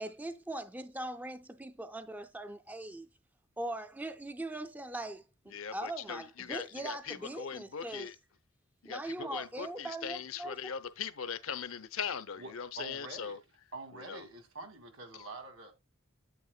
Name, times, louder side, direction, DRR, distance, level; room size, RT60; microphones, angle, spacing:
voice 1, 0.0-3.1 3.6-8.2 8.8-10.8, right 1 dB, 10° right, 0.3 m, -41 dB
voice 2, 5.5-8.1 8.8-9.0 9.3-13.4 14.1-14.2, left 7 dB, 85° left, 0.7 m, -40 dB
voice 3, 12.4-13.5 13.7-15.7, right 2 dB, 85° right, 2.4 m, -46 dB
9.3 x 8.3 x 2.3 m
head